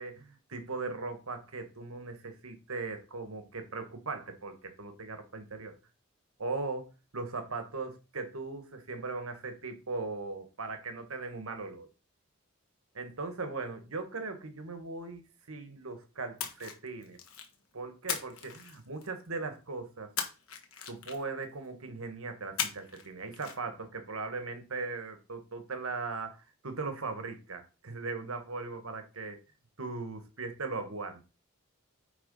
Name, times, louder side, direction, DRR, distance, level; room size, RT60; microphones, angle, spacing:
voice 1, 0.0-5.7 6.4-11.9 12.9-17.2 17.7-20.1 20.9-29.4 29.8-31.2, right 3 dB, 80° right, 1.4 m, -39 dB
Splash splatter, 16.4-17.5 18.1-19.3 20.2-21.4 22.6-23.1 23.3-23.5, left 7 dB, 80° left, 1.4 m, -37 dB
9.0 x 3.6 x 5.4 m
head